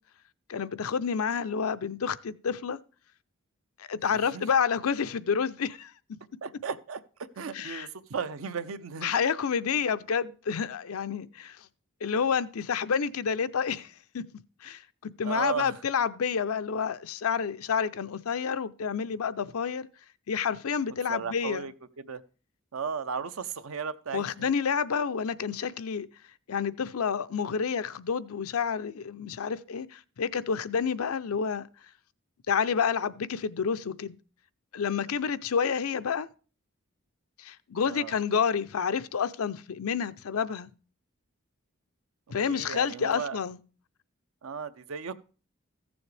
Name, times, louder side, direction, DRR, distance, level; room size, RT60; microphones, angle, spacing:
voice 1, 0.5-2.8 3.8-5.9 7.5-7.9 9.0-11.6 12.0-14.2 14.6-19.9 20.3-21.7 24.1-26.1 26.5-31.7 32.5-34.2 34.7-36.3 37.4-40.7 42.3-43.6, left 6 dB, 90° left, 0.5 m, -29 dB
voice 2, 4.1-4.4 6.4-7.0 7.4-9.1 15.2-15.8 21.1-22.2 22.7-24.5 37.9-38.2 42.5-43.4 44.4-45.1, right 6 dB, 75° right, 0.6 m, -35 dB
15.0 x 7.0 x 3.3 m
head